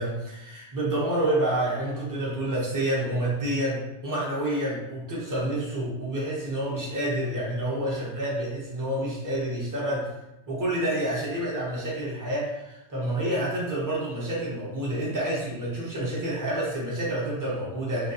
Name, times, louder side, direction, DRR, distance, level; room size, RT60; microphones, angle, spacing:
voice 1, 0.0-10.1 10.5-18.1, right 1 dB, 25° right, -5 dB, 0.4 m, -28 dB
2.3 x 2.2 x 2.7 m, 0.93 s
omnidirectional pair, 1.3 m